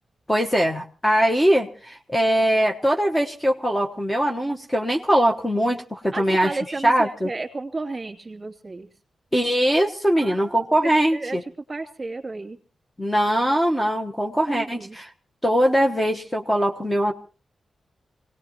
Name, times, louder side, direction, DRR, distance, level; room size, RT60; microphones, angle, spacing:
voice 1, 0.3-6.6 6.8-7.3 9.3-11.4 13.0-15.1 15.4-17.1, equal, 10° left, 2 dB, 1.2 m, -21 dB
voice 2, 6.1-8.9 10.2-10.8 11.1-11.4 11.7-12.6 14.5-15.0, right 3 dB, 30° right, 3 dB, 2.8 m, -33 dB
25.5 x 18.5 x 3.0 m, 0.37 s
cardioid pair, 85°, 0 cm